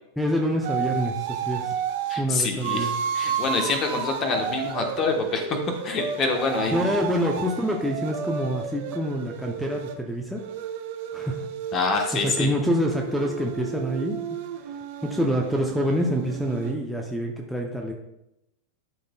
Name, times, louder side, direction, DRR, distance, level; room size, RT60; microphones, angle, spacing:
voice 1, 0.2-1.8 2.2-2.9 6.7-10.4 11.1-11.5 12.1-14.4 14.7-14.8 15.0-17.9, equal, ahead, 1 dB, 0.8 m, -26 dB
sound 1, 0.6-2.2 2.6-10.0 10.4-16.7, right 7 dB, 50° right, 0.7 m, -32 dB
voice 2, 2.1-5.6 5.8-7.0 11.7-12.5, left 4 dB, 30° left, 4 dB, 1.2 m, -26 dB
11.5 x 4.0 x 2.3 m, 0.87 s
figure-of-eight pair, 90°, 0 cm